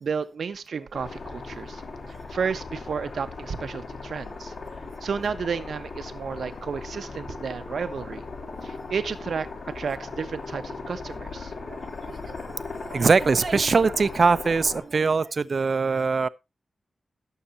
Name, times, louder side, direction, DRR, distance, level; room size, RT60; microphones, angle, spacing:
voice 1, 0.0-1.8 2.3-4.5 5.0-8.2 8.6-9.5 9.7-11.5, right 6 dB, 75° right, 1.1 m, -32 dB
sound 1, 0.9-14.8, left 3 dB, 65° left, 4.1 m, -38 dB
voice 2, 12.1-16.3, right 4 dB, 50° right, 0.7 m, -22 dB
17.5 x 6.8 x 2.7 m
wide cardioid pair, 100°, 0 cm